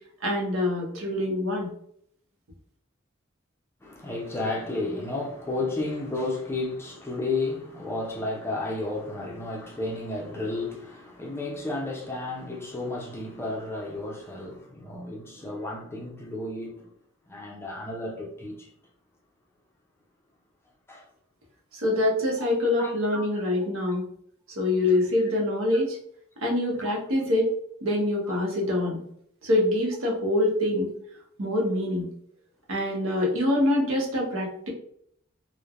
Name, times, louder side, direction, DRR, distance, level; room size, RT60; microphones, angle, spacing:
voice 1, 0.2-1.7 21.7-24.0 24.6-26.0 26.4-27.5 27.8-29.0 29.4-30.9 31.4-32.1 32.7-34.7, left 1 dB, 85° right, 0.9 m, -25 dB
voice 2, 3.8-16.9 17.3-18.7 20.9-21.0 22.8-23.2 23.9-24.0 26.8-26.9, left 2 dB, 10° left, 0.4 m, -32 dB
3.1 x 2.1 x 2.4 m
head